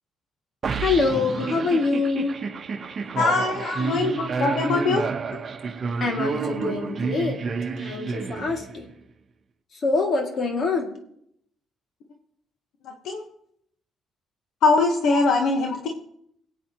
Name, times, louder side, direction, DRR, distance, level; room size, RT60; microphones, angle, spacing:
sound 1, 0.6-8.9, right 5 dB, 45° right, 0.9 m, -29 dB
voice 1, 0.8-2.4 3.6-4.1 4.4-4.5 6.0-7.4 7.8-8.8 9.8-10.9 15.1-15.2, left 4 dB, 55° left, 2 dB, 2.1 m, -25 dB
voice 2, 3.2-5.1 13.0-13.2 14.6-15.9, left 3 dB, 80° left, 2 dB, 1.1 m, -22 dB
21.0 x 8.2 x 2.9 m, 0.71 s
cardioid pair, 90°, 0 cm